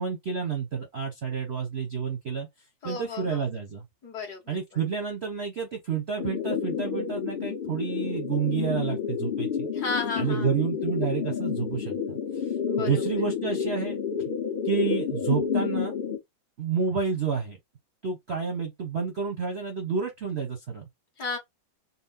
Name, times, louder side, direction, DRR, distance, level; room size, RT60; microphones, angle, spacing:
voice 1, 0.0-2.5 2.8-3.8 4.5-9.7 10.2-12.5 12.8-14.0 14.6-15.9 16.6-17.6 18.0-20.9, right 6 dB, 50° right, 0.8 m, -30 dB
voice 2, 2.8-3.4 4.0-4.6 9.7-10.5 12.7-13.0 21.2-21.4, left 4 dB, 55° left, 2.0 m, -33 dB
sound 1, 6.2-16.2, left 7 dB, 80° left, 0.4 m, -30 dB
4.2 x 2.1 x 4.0 m
omnidirectional pair, 2.2 m